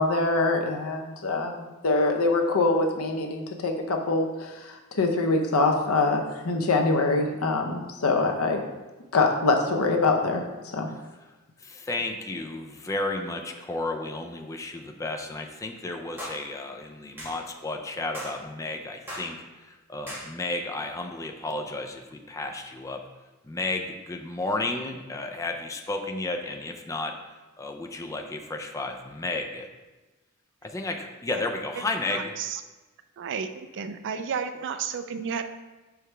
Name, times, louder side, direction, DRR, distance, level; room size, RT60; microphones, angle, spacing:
voice 1, 0.0-8.6 9.1-10.4 10.7-10.9, left 3 dB, 70° left, 3 dB, 0.7 m, -24 dB
voice 2, 11.6-19.4 19.9-23.0 23.5-27.1 27.6-29.7 30.6-32.3, left 2 dB, 15° left, 3 dB, 0.4 m, -32 dB
sound 1, 16.2-16.4 17.2-17.4 18.1-18.4 19.1-19.3 20.1-20.3, equal, 10° right, 1.6 m, -37 dB
voice 3, 31.8-32.6 33.2-33.5 33.7-35.4, right 6 dB, 55° right, 9 dB, 0.4 m, -32 dB
6.0 x 4.8 x 3.3 m, 1.1 s
head